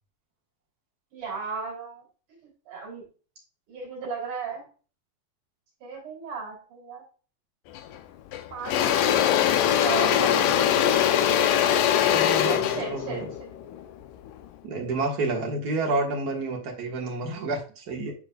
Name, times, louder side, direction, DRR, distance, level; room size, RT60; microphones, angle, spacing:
voice 1, 1.1-2.0 2.4-3.0 3.7-4.7 5.8-7.0 8.5-11.1 12.4-13.2, right 5 dB, 55° right, -1 dB, 4.3 m, -36 dB
Engine / Drill, 7.8-8.0 8.3-14.5, left 10 dB, 85° left, 1.8 m, -22 dB
voice 2, 12.1-13.3 14.6-18.1, right 3 dB, 75° right, 0 dB, 0.8 m, -29 dB
9.4 x 5.3 x 2.3 m, 0.36 s
omnidirectional pair, 4.4 m